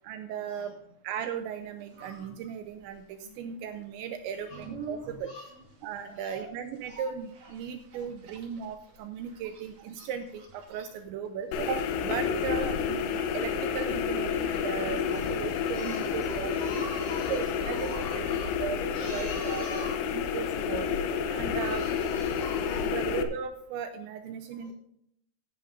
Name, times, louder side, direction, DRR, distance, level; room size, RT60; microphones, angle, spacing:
voice 1, 0.0-0.7 1.0-5.3 5.8-16.8 17.3-18.0 18.6-19.9 20.1-20.9 21.3-21.8 22.9-24.7, right 8 dB, 85° right, 7 dB, 2.6 m, -37 dB
sound 1, 1.4-19.4 19.7-19.8, right 3 dB, 45° right, 2.9 m, -51 dB
voice 2, 4.3-4.7 5.2-5.5 6.0-6.4 14.6-18.6 18.9-20.1 21.5-23.0 24.5-24.7, left 1 dB, 65° left, 0 dB, 1.8 m, -44 dB
sound 2, 11.5-23.2, left 7 dB, 90° left, 3.5 m, -30 dB
15.5 x 10.0 x 2.6 m, 0.73 s
omnidirectional pair, 5.8 m